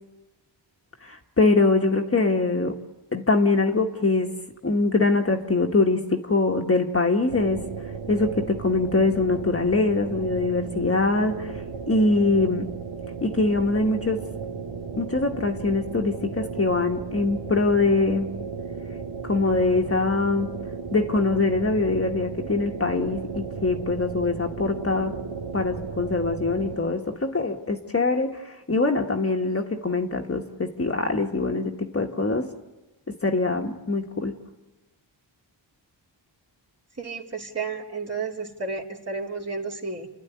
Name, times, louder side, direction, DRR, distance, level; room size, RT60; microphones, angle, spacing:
voice 1, 1.0-2.8 3.1-4.3 4.6-7.6 8.1-11.5 11.9-12.7 13.2-14.3 15.0-18.3 19.2-20.5 20.9-25.1 25.5-32.5 33.1-34.3, left 3 dB, 30° left, 3 dB, 1.5 m, -23 dB
sound 1, 7.3-26.8, right 5 dB, 65° right, 2.2 m, -35 dB
voice 2, 37.0-40.1, right 4 dB, 35° right, 0 dB, 2.8 m, -32 dB
29.5 x 11.5 x 9.5 m, 1.1 s
cardioid pair, 80°, 45 cm